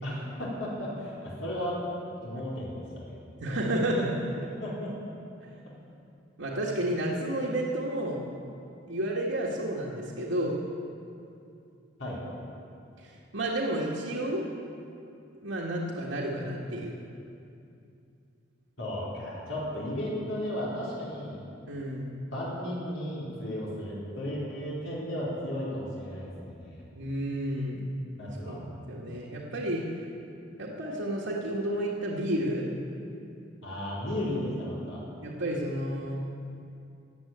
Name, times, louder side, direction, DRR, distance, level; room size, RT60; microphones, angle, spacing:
voice 1, 0.0-1.8 2.2-3.2 4.6-4.9 12.0-12.2 18.8-21.4 22.3-26.9 28.2-28.6 33.6-35.0, left 1 dB, 85° left, -6 dB, 4.3 m, -34 dB
voice 2, 3.4-4.4 6.4-8.2 8.9-10.5 13.0-14.4 15.4-16.9 21.7-22.1 27.0-27.8 28.4-28.6 28.9-29.8 30.6-32.7 35.2-36.2, right 1 dB, 85° right, -5 dB, 1.8 m, -31 dB
15.5 x 8.8 x 8.9 m, 2.6 s
head